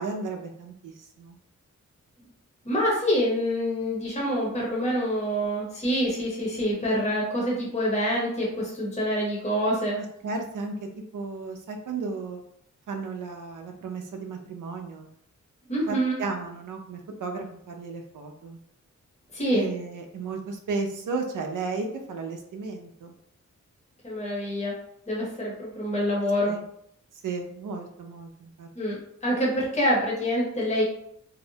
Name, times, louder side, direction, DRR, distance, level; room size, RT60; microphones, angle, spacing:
voice 1, 0.0-1.4 10.0-10.7 11.1-12.4 12.9-15.1 15.9-18.6 19.5-23.1 26.5-26.6 27.2-28.7, right 4 dB, 85° right, 3 dB, 0.5 m, -34 dB
voice 2, 2.6-10.0 15.7-16.2 19.3-19.7 24.0-24.8 25.1-26.6 28.7-30.8, equal, 20° left, -4 dB, 0.7 m, -26 dB
2.6 x 2.1 x 2.7 m, 0.70 s
wide cardioid pair, 175°, 31 cm